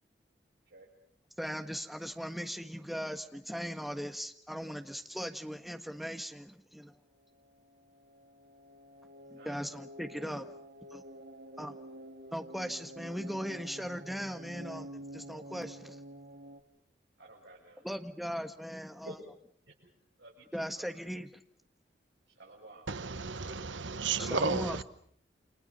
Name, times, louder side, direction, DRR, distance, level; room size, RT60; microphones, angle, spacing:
voice 1, 1.4-6.9 9.3-10.5 10.9-11.0 11.6-11.8 12.3-16.0 17.8-19.2 20.5-21.4 24.2-24.8, equal, ahead, 1.5 m, -39 dB
sound 1, 7.2-16.6, right 1 dB, 55° right, 2.1 m, -49 dB
voice 2, 17.2-17.8 19.0-19.1 19.7-19.8 20.2-20.9 22.4-22.8, right 1 dB, 70° right, 7.0 m, -51 dB
voice 3, 22.9-24.8, right 4 dB, 90° right, 1.1 m, -33 dB
29.0 x 27.0 x 5.6 m
head